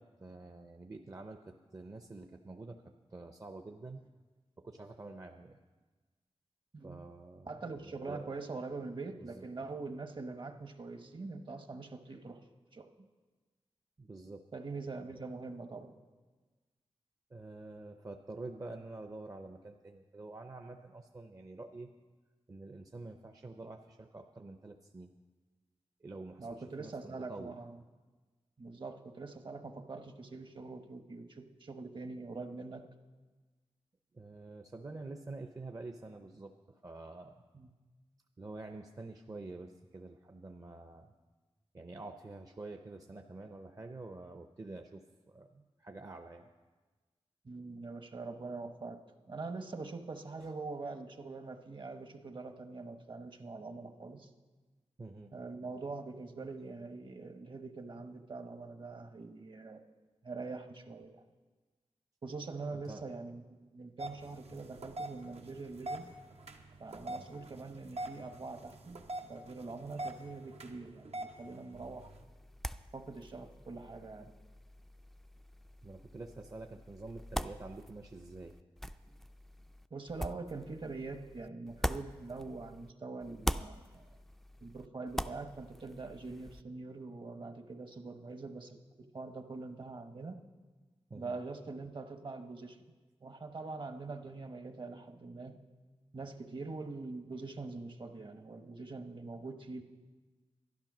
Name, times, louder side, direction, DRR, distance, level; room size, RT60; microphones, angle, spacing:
voice 1, 0.0-4.0 4.6-5.6 6.8-7.5 7.8-8.3 9.2-9.5 13.0-13.1 14.0-14.4 15.1-15.3 17.3-21.9 22.5-25.1 26.0-27.5 34.1-37.4 38.4-41.1 41.7-46.5 50.4-50.5 55.0-55.3 62.7-63.1 67.1-67.3 75.8-78.5 91.1-91.4, right 2 dB, 35° right, 5 dB, 0.6 m, -47 dB
voice 2, 7.5-12.4 12.7-12.9 14.5-16.0 26.4-27.8 28.6-32.9 37.5-37.7 47.4-54.3 55.3-59.8 60.2-61.2 62.2-66.1 66.8-72.1 72.9-74.3 79.9-84.0 84.6-90.4 91.1-92.8 93.2-95.6 96.1-99.8, right 3 dB, 50° right, 7 dB, 1.0 m, -44 dB
sound 1, 64.0-72.2, right 1 dB, 80° right, 0.9 m, -45 dB
sound 2, 71.7-82.9 83.2-86.6, equal, ahead, 0.3 m, -43 dB
12.0 x 11.0 x 6.0 m, 1.3 s
wide cardioid pair, 85°, 11 cm